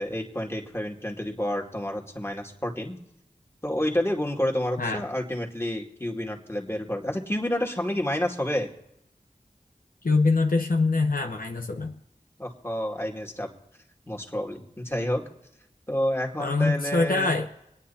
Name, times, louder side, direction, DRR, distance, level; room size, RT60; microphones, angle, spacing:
voice 1, 0.0-2.9 3.6-8.7 12.4-13.5 14.1-15.2 15.9-17.3, left 1 dB, 15° left, 0 dB, 2.3 m, -29 dB
voice 2, 10.0-12.0 16.4-17.6, left 3 dB, 75° left, 3 dB, 1.0 m, -24 dB
25.5 x 9.7 x 2.9 m, 0.80 s
wide cardioid pair, 40°, 15 cm